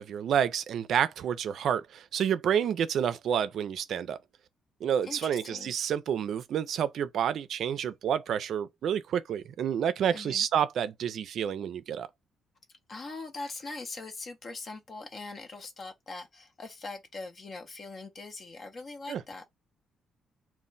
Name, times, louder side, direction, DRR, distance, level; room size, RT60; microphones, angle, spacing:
voice 1, 0.0-4.2 4.8-12.1 19.1-19.2, right 8 dB, 70° right, 0.4 m, -29 dB
voice 2, 5.0-5.7 10.1-10.5 12.9-19.4, left 3 dB, 45° left, 0.5 m, -42 dB
2.1 x 2.1 x 3.8 m
cardioid pair, 90°, 0 cm